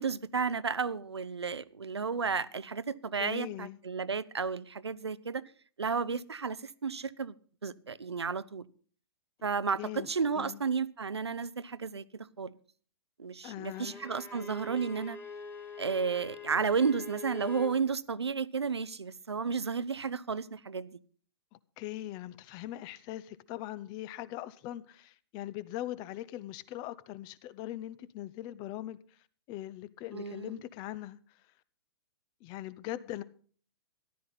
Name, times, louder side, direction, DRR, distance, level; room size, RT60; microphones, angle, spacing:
voice 1, 0.0-5.4 5.8-7.3 7.6-8.7 9.4-12.6 13.2-15.2 15.8-21.0 30.1-30.6, right 5 dB, 90° right, 0.6 m, -32 dB
voice 2, 3.1-3.8 9.8-10.1 10.3-10.6 13.4-14.0 21.8-29.0 29.5-31.2 32.4-33.2, left 14 dB, 30° left, 0.7 m, -41 dB
Bowed string instrument, 13.7-17.8, left 3 dB, 15° left, 2.4 m, -44 dB
14.0 x 11.5 x 4.0 m
figure-of-eight pair, 115°, 13 cm